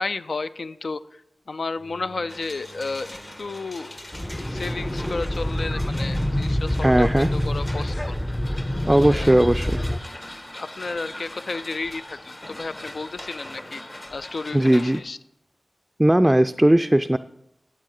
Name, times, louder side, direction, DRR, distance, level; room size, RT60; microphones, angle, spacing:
voice 1, 0.0-4.0 4.4-8.2 8.9-9.4 10.6-15.2 16.2-16.3, left 3 dB, 80° left, 13 dB, 0.4 m, -32 dB
Bowed string instrument, 1.7-4.9, right 1 dB, 55° left, 3.3 m, -50 dB
sound 1, 2.3-15.0, left 1 dB, 35° left, 1.5 m, -41 dB
sound 2, 4.1-10.0, left 1 dB, 20° left, 0.6 m, -26 dB
voice 2, 6.8-7.3 8.9-9.8 14.5-15.0 16.0-17.2, right 1 dB, 15° right, 10 dB, 0.3 m, -18 dB
13.0 x 8.3 x 3.8 m, 0.81 s
cardioid pair, 45°, 0 cm